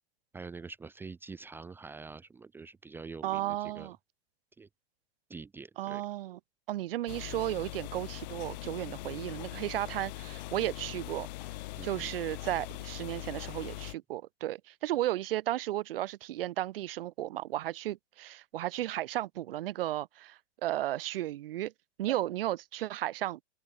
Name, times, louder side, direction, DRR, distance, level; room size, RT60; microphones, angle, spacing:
voice 1, 0.3-3.9 4.6-4.7 5.3-6.0 11.8-12.1, right 4 dB, 5° right, 1.3 m, -45 dB
voice 2, 3.2-4.0 5.8-6.4 6.7-11.3 11.8-21.7 22.0-23.4, right 14 dB, 60° right, 1.1 m, -34 dB
sound 1, 7.1-13.9, left 18 dB, 40° left, 1.3 m, -41 dB
supercardioid pair, 170°, 32 cm